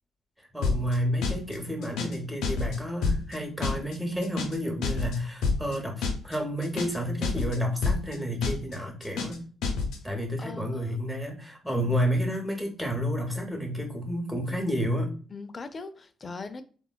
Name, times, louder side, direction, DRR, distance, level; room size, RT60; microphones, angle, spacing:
voice 1, 0.5-9.4 10.0-15.1, equal, 5° right, 0.8 m, -30 dB
sound 1, 0.6-1.0 1.2-1.6 1.8-2.2 2.4-2.8 3.0-3.4 3.6-4.0 4.2-4.6 4.8-5.2 5.4-5.8 6.0-6.4 6.6-7.0 7.2-7.6 7.8-8.2 8.4-8.8 9.0-9.4 9.6-10.0, left 4 dB, 90° left, 0.6 m, -28 dB
voice 2, 10.4-11.0 11.7-11.9 15.3-16.6, left 4 dB, 35° left, 0.3 m, -40 dB
3.5 x 2.2 x 2.2 m
cardioid pair, 90°, 0 cm